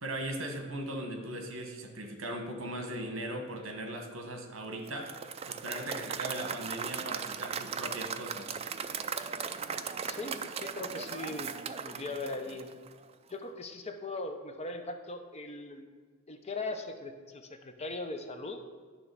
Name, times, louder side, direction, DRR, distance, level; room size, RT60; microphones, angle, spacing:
voice 1, 0.0-5.1 5.5-8.6, right 1 dB, 70° right, 4 dB, 1.3 m, -38 dB
Applause / Crowd, 4.9-13.0, right 6 dB, 30° right, 0.4 m, -38 dB
voice 2, 10.1-11.5 11.8-12.7 13.3-15.9 16.3-18.6, left 2 dB, 30° left, 6 dB, 0.7 m, -39 dB
11.0 x 3.7 x 6.9 m, 1.5 s
head